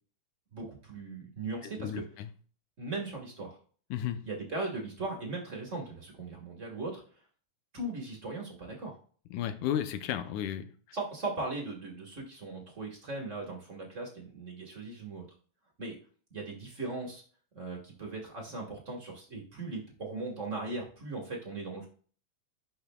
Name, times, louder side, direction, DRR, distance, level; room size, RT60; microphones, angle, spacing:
voice 1, 0.5-2.0 2.8-3.6 4.2-7.0 7.7-9.0 10.9-15.3 15.8-15.9 16.3-17.2 17.5-21.9, right 3 dB, 35° right, 0 dB, 1.3 m, -38 dB
voice 2, 1.6-2.3 3.9-4.3 9.3-10.7, left 10 dB, 90° left, 10 dB, 2.2 m, -34 dB
11.5 x 5.5 x 2.3 m, 0.43 s
omnidirectional pair, 3.4 m